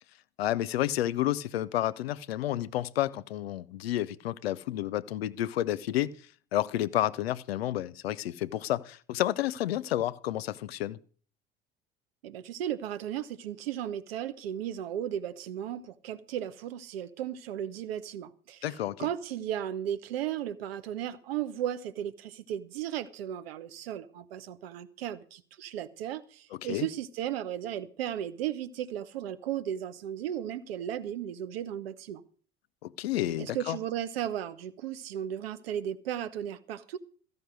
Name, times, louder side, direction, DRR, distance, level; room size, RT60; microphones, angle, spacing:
voice 1, 0.4-6.1 6.5-11.0 18.6-19.1 26.7-26.9 32.8-33.8, left 13 dB, 70° left, 0.6 m, -30 dB
voice 2, 12.2-18.7 19.0-32.2 33.4-37.0, right 10 dB, 70° right, 1.0 m, -35 dB
14.0 x 5.4 x 9.4 m
figure-of-eight pair, 65°, 32 cm